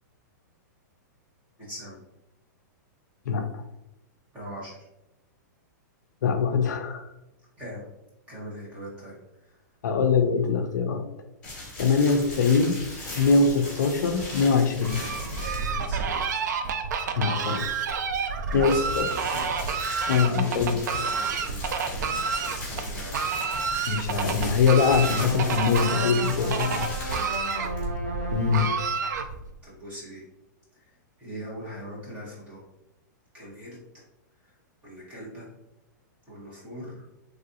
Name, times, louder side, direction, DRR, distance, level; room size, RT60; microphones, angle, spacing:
voice 1, 1.6-1.9 4.3-4.8 7.6-7.8 8.3-9.1 15.5-16.2 18.5-19.4 19.7-23.2 26.7-27.7 29.1-29.3 29.6-30.2 31.2-32.6 33.3-34.0 34.8-35.5 36.3-37.0, equal, 15° right, -7 dB, 0.9 m, -41 dB
voice 2, 3.3-3.6 6.2-7.1 9.8-11.1 11.8-12.8 13.2-15.0 17.2-17.6 18.5-19.1 20.1-20.8 23.9-26.8 28.3-28.7, left 5 dB, 70° left, 6 dB, 0.4 m, -23 dB
sound 1, 11.4-15.9 18.4-27.9, left 2 dB, 10° left, 1.3 m, -38 dB
Fowl, 14.8-29.6, right 5 dB, 65° right, 0.4 m, -30 dB
sound 2, 25.0-29.0, equal, 40° right, 0.7 m, -35 dB
3.3 x 2.5 x 2.6 m, 0.93 s
supercardioid pair, 180°, 10 cm